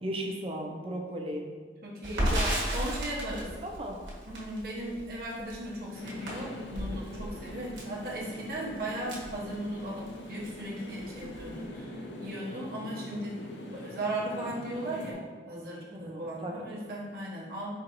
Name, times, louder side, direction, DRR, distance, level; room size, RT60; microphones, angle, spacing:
voice 1, 0.0-1.5 2.1-2.6 3.6-4.0 15.9-16.8, right 1 dB, 30° right, 1 dB, 0.5 m, -36 dB
voice 2, 1.8-2.3 2.7-3.5 4.3-17.7, right 1 dB, 55° right, -5 dB, 0.9 m, -37 dB
Crackle, 2.0-10.1 10.4-10.6 10.9-11.6, equal, 80° right, 1.2 m, -34 dB
sound 1, 5.9-15.1, left 1 dB, 80° left, 0.6 m, -43 dB
4.4 x 4.2 x 2.6 m, 1.4 s
head